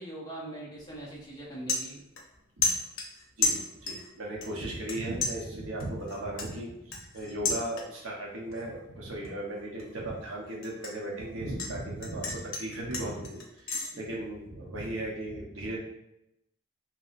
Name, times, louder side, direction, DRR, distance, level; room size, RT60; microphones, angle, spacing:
voice 1, 0.0-2.0 13.9-14.1, right 1 dB, 20° left, -5 dB, 0.7 m, -42 dB
sound 1, 0.8-1.0 1.3-2.4 2.6-4.1 4.4-4.9 5.2-8.1 8.5-8.8 9.2-11.7 12.0-13.9, left 3 dB, 85° left, 0.7 m, -33 dB
voice 2, 3.4-15.8, right 1 dB, 80° right, -2 dB, 0.8 m, -36 dB
2.9 x 2.8 x 2.5 m, 0.84 s
head